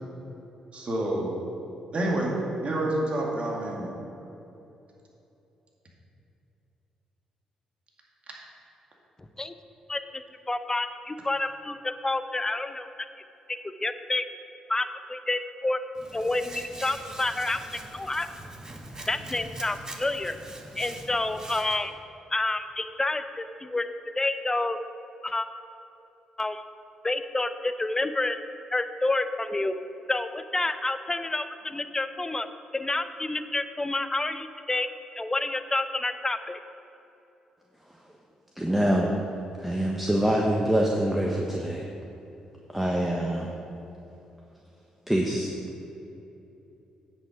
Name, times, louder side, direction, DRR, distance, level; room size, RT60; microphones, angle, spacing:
voice 1, 0.7-1.3 1.9-2.3 2.6-3.9, right 1 dB, 45° right, -2 dB, 2.2 m, -28 dB
voice 2, 9.2-9.5 9.9-10.2 10.5-12.9 13.8-14.3 14.7-15.8 16.1-17.6 17.9-18.3 19.1-20.4 20.8-21.9 22.3-23.9 24.2-24.8 25.2-25.5 26.4-26.6 27.0-28.4 28.7-29.7 30.1-32.5 32.7-34.9 35.2-36.6, left 2 dB, 20° left, 10 dB, 0.7 m, -29 dB
Hands, 16.0-21.8, right 1 dB, 25° right, 1.4 m, -43 dB
voice 3, 38.6-39.1 39.6-41.9 42.7-43.5 45.1-45.5, right 1 dB, 10° right, -1 dB, 1.2 m, -25 dB
9.5 x 7.1 x 5.2 m, 2.9 s
hypercardioid pair, 45°, 3 cm